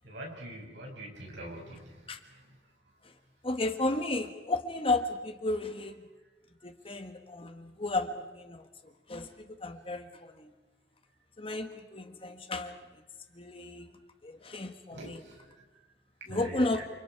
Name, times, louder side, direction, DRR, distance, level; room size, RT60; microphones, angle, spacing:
voice 1, 0.0-2.6 14.9-15.5 16.3-16.8, right 1 dB, 85° right, -1 dB, 6.6 m, -44 dB
voice 2, 3.4-6.0 6.6-10.5 11.4-12.8 13.3-13.9 14.2-15.2 16.3-16.8, left 2 dB, 30° left, 7 dB, 1.4 m, -33 dB
29.0 x 28.5 x 4.7 m, 1.2 s
head